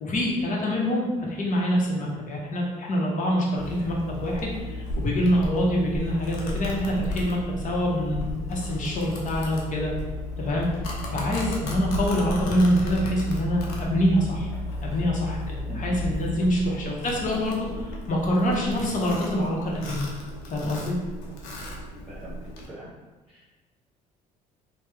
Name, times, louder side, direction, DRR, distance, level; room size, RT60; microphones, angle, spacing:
voice 1, 0.0-7.4 7.6-9.9 10.4-10.7 11.1-14.5 14.8-20.0 20.5-21.0, equal, 45° left, -3 dB, 0.9 m, -25 dB
Domestic sounds home sounds, 3.6-22.7, left 1 dB, 75° left, 0.6 m, -34 dB
voice 2, 15.7-16.0 16.3-16.4 16.8-16.9 22.1-22.4 22.7-22.9 23.3-23.4, right 1 dB, 5° right, -9 dB, 1.4 m, -41 dB
3.0 x 2.1 x 3.3 m, 1.2 s
hypercardioid pair, 65°, 18 cm